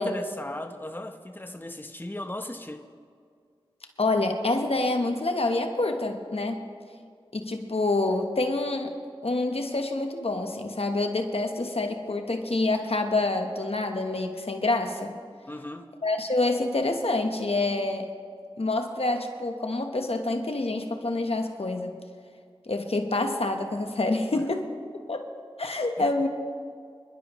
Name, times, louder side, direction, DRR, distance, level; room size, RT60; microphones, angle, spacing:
voice 1, 0.0-2.9 15.5-15.9 24.3-24.4 26.0-26.1, left 1 dB, 20° left, 0.8 m, -37 dB
voice 2, 4.0-6.6 7.3-8.9 9.2-15.2 16.0-18.1 18.6-21.9 22.7-24.7 25.1-25.3 25.6-26.3, left 2 dB, 85° left, 1.0 m, -27 dB
25.5 x 11.5 x 3.1 m
wide cardioid pair, 40°, 10 cm